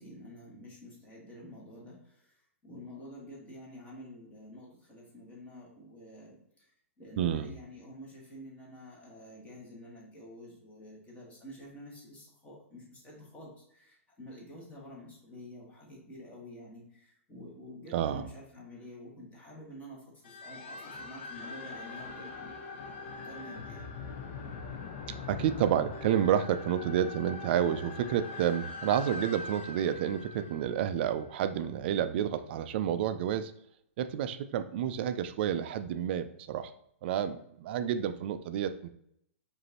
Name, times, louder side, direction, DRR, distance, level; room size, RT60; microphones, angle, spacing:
voice 1, 0.0-2.0 2.6-6.4 7.0-22.6 22.9-23.8, equal, 20° left, -4 dB, 1.5 m, -49 dB
voice 2, 7.2-7.5 17.9-18.3 25.3-33.5 34.0-36.7 37.0-38.9, right 9 dB, 50° right, 11 dB, 0.3 m, -30 dB
sound 1, 20.2-31.5, left 4 dB, 50° left, 0.6 m, -43 dB
4.9 x 2.6 x 2.9 m, 0.72 s
figure-of-eight pair, 115°, 8 cm